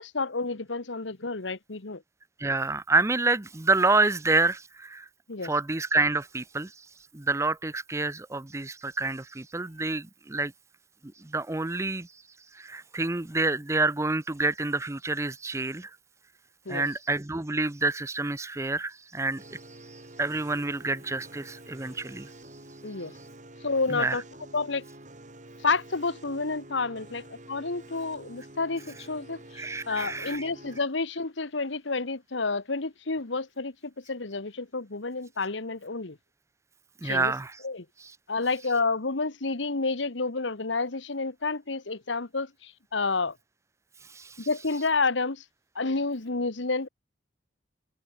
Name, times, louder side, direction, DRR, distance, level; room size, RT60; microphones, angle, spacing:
voice 1, 0.0-2.0 5.3-5.5 16.6-16.8 22.8-23.1 23.6-24.2 24.5-24.8 25.6-29.4 29.9-36.2 37.0-37.3 37.6-37.8 38.3-43.3 44.4-45.4 45.7-46.9, left 3 dB, 90° left, 1.4 m, -30 dB
voice 2, 2.4-5.1 5.4-6.9 7.1-10.5 11.2-12.1 12.5-15.9 16.7-19.6 19.9-22.3 23.9-24.2 29.5-30.5 37.0-37.6 38.0-38.2 44.1-44.5, right 3 dB, 15° right, 0.6 m, -28 dB
sound 1, 19.4-30.8, right 1 dB, 40° right, 3.7 m, -48 dB
head